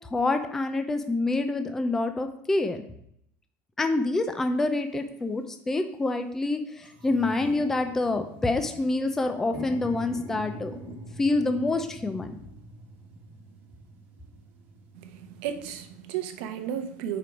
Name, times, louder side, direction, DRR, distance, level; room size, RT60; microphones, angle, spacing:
voice 1, 0.1-2.8 3.8-10.8 11.2-12.4, left 2 dB, 5° left, 7 dB, 0.3 m, -27 dB
sound 1, 4.4-4.5 5.3-5.5 5.9-6.0 6.3-16.0, right 1 dB, 35° right, 1.1 m, -44 dB
voice 2, 14.9-17.2, right 9 dB, 75° right, 8 dB, 0.7 m, -34 dB
4.9 x 4.4 x 5.1 m, 0.72 s
cardioid pair, 180°, 5 cm